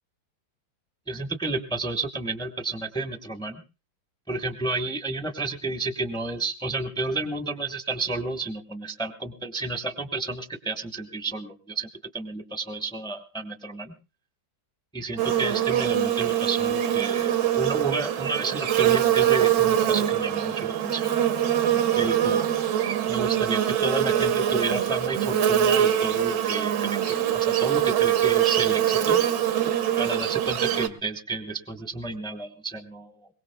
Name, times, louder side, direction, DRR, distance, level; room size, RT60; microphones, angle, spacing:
voice 1, 1.1-3.6 4.3-13.9 14.9-21.1 21.9-22.5 23.1-29.2 30.0-33.3, right 3 dB, 5° left, 6 dB, 0.7 m, -31 dB
Buzz, 15.2-30.9, right 11 dB, 75° right, 1.5 m, -23 dB
23.0 x 20.5 x 2.2 m, 0.32 s
omnidirectional pair, 2.0 m